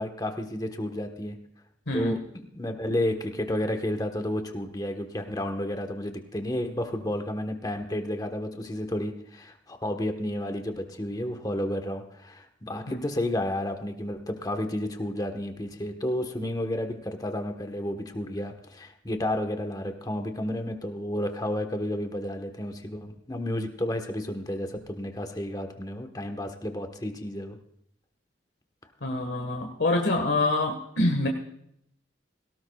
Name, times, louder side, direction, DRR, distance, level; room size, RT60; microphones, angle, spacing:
voice 1, 0.0-1.4 1.9-27.6, left 1 dB, 20° left, 6 dB, 1.3 m, -31 dB
voice 2, 1.9-2.2 12.9-13.0 29.0-31.3, left 2 dB, 75° left, 3 dB, 1.6 m, -26 dB
18.5 x 17.0 x 2.4 m, 0.71 s
head